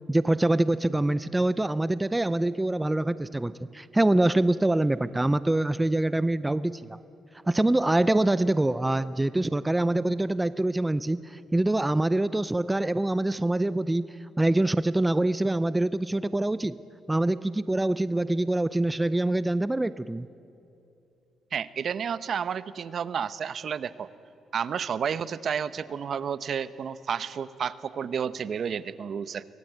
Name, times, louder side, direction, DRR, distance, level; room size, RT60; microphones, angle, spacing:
voice 1, 0.0-7.0 7.5-16.8 17.1-20.3, right 1 dB, 10° right, 16 dB, 0.5 m, -25 dB
voice 2, 21.5-24.1 24.5-29.4, right 7 dB, 55° right, 16 dB, 0.8 m, -31 dB
24.0 x 18.5 x 9.2 m, 2.8 s
cardioid pair, 90°, 0 cm